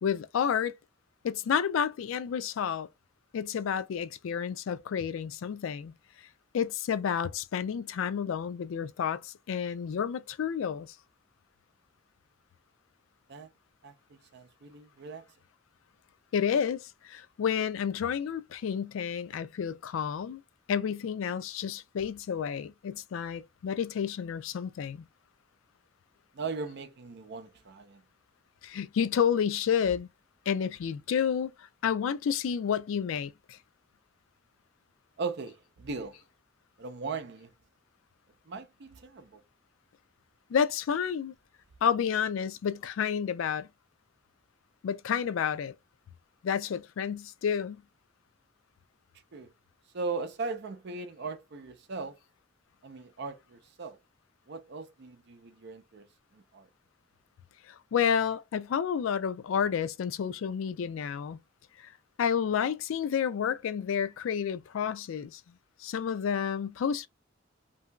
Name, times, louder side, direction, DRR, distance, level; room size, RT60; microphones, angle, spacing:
voice 1, 0.0-0.7 1.2-2.9 3.3-5.9 6.5-10.9 16.3-20.4 20.7-25.0 28.6-30.1 30.5-31.5 31.8-33.6 40.5-41.3 41.8-43.7 44.8-45.7 46.4-47.8 57.7-61.4 61.8-61.9 62.2-65.4 65.8-67.1, left 7 dB, 75° left, 0.3 m, -30 dB
voice 2, 14.3-15.2 26.3-28.0 35.2-36.2 36.8-37.5 38.5-39.4 49.3-49.5 49.9-52.2 52.8-54.0 54.5-56.0 56.3-56.7, right 4 dB, 55° right, 0.5 m, -38 dB
2.8 x 2.6 x 2.2 m
head